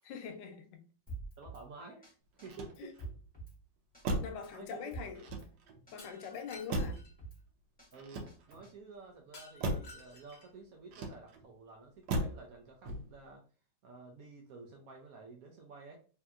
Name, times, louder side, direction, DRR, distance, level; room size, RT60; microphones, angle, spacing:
voice 1, 0.0-0.8 2.8-2.9 4.2-5.3 5.9-7.0, left 6 dB, 80° left, 1.2 m, -43 dB
Drum kit, 1.1-1.6 2.0-2.1 2.4-3.6 3.9-4.1 4.4-5.5 5.9-6.0 6.2-7.4 7.8-8.7, right 3 dB, 5° left, 0.9 m, -46 dB
voice 2, 1.4-2.0 2.4-2.9 4.5-4.9 7.9-13.4 13.8-16.0, right 4 dB, 65° right, 0.9 m, -51 dB
Motor vehicle (road), 2.4-3.2 4.0-4.5 5.1-5.8 6.7-7.2 7.9-8.7 9.6-10.0 10.9-11.5 12.1-12.5 12.8-13.3, right 1 dB, 90° right, 1.4 m, -37 dB
Shatter, 6.0-7.1 9.3-10.6, left 3 dB, 50° left, 0.9 m, -54 dB
3.3 x 2.8 x 2.4 m
omnidirectional pair, 1.9 m